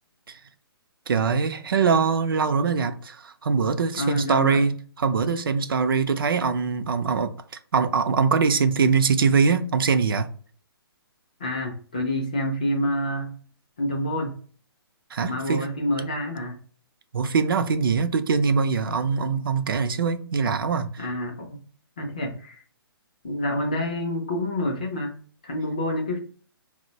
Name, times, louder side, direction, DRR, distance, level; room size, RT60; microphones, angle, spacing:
voice 1, 1.1-7.3 7.7-10.3 15.1-15.7 17.1-21.0, right 5 dB, 60° right, 0.4 m, -23 dB
voice 2, 4.0-4.6 11.4-13.4 13.8-14.4 15.2-16.6 21.0-21.6 22.0-22.6 23.2-25.2 25.4-26.2, left 1 dB, 20° left, 0.3 m, -27 dB
4.1 x 2.1 x 2.7 m
hypercardioid pair, 175°, 13 cm